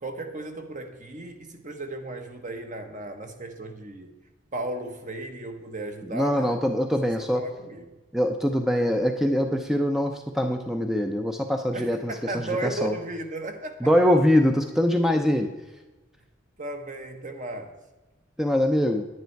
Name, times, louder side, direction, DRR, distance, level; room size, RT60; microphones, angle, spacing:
voice 1, 0.0-4.1 4.5-6.6 7.0-7.8 11.7-13.8 16.6-17.8, right 2 dB, 40° right, 6 dB, 1.2 m, -35 dB
voice 2, 6.0-7.4 8.1-13.0 13.8-15.5 18.4-19.1, equal, ahead, 5 dB, 0.5 m, -23 dB
10.0 x 9.4 x 4.6 m, 1.2 s
head